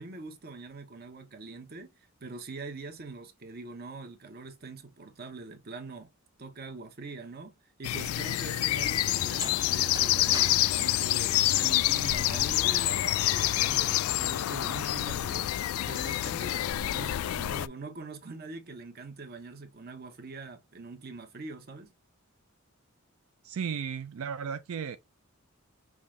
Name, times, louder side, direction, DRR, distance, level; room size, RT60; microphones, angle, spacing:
voice 1, 0.0-1.9 2.2-6.1 6.4-15.5 15.9-21.9, right 3 dB, 50° right, 0.9 m, -43 dB
sound 1, 7.8-17.7, left 14 dB, 90° left, 0.3 m, -27 dB
sound 2, 9.2-12.1, right 3 dB, 20° right, 0.5 m, -45 dB
voice 2, 23.4-25.0, right 7 dB, 85° right, 0.4 m, -34 dB
5.6 x 2.4 x 3.2 m
head